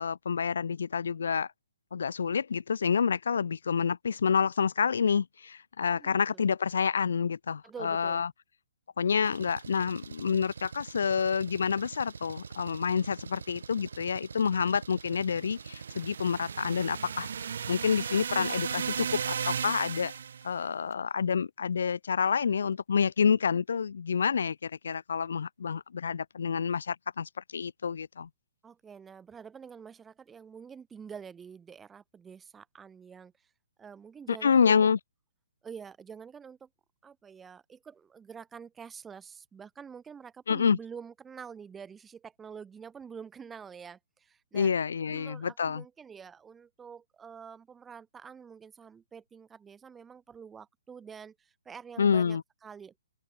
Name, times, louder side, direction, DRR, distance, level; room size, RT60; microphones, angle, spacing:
voice 1, 0.0-1.5 1.9-8.3 9.0-17.3 17.7-20.1 20.4-28.3 34.3-35.0 40.5-40.8 44.5-45.8 52.0-52.4, left 6 dB, 70° left, 0.7 m, -28 dB
voice 2, 5.9-6.5 7.6-8.2 28.6-33.5 33.8-34.9 35.6-36.7 37.0-44.7 45.1-52.9, right 6 dB, 5° right, 0.8 m, -47 dB
Engine, 9.2-19.3, right 5 dB, 90° right, 1.4 m, -45 dB
sound 1, 12.3-12.6 13.7-13.8 14.5-14.6 14.9-16.4 16.8-18.5 19.1-21.8 22.1-23.3 24.2-24.3 24.5-24.6 24.9-25.0, left 40 dB or more, 20° left, 3.2 m, -67 dB
sound 2, 15.5-20.5, right 7 dB, 60° right, 1.1 m, -35 dB
open air
hypercardioid pair, 175°, 0 cm